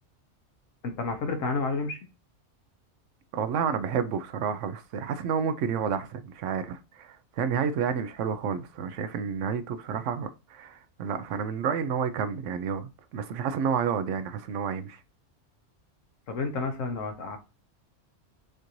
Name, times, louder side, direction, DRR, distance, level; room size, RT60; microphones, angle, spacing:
voice 1, 0.8-2.0 16.3-17.4, left 3 dB, 85° left, 1.4 m, -30 dB
voice 2, 3.3-15.0, right 7 dB, 75° right, 0.9 m, -30 dB
6.5 x 2.6 x 3.0 m
omnidirectional pair, 1.3 m